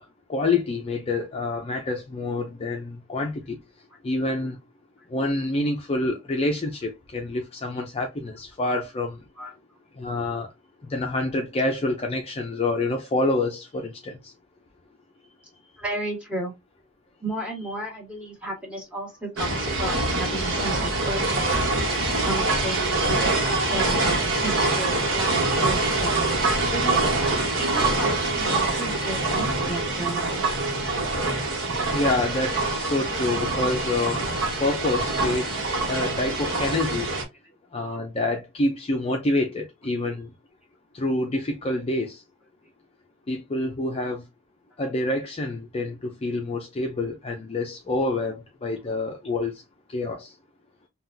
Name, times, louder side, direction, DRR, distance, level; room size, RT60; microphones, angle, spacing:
voice 1, 0.3-3.6 4.0-4.6 5.1-9.2 10.0-10.5 10.8-14.3 20.5-20.6 31.9-34.3 34.6-37.1 37.7-40.3 40.9-42.2 43.3-44.2 44.8-49.6 49.9-50.3, left 2 dB, 30° left, 0.5 m, -27 dB
voice 2, 15.8-16.5 17.2-21.7 22.1-26.2 26.7-30.4 40.0-40.1, right 1 dB, 5° right, 1.4 m, -33 dB
sound 1, 19.4-37.2, right 2 dB, 60° right, 1.1 m, -25 dB
3.8 x 2.3 x 2.6 m
head